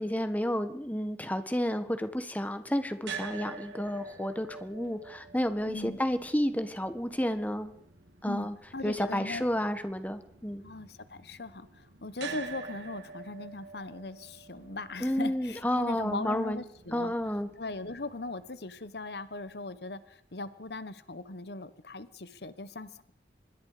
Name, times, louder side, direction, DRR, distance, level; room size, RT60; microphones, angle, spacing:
voice 1, 0.0-7.7 8.2-8.6 8.8-10.6 15.0-16.6 16.9-17.5, equal, 10° left, 9 dB, 1.6 m, -31 dB
sound 1, 3.0-19.2, right 5 dB, 85° right, 3.1 m, -47 dB
voice 2, 5.7-6.0 8.3-9.7 10.6-17.1 17.6-23.1, left 2 dB, 65° left, 14 dB, 1.2 m, -39 dB
26.0 x 21.5 x 5.0 m, 0.64 s
head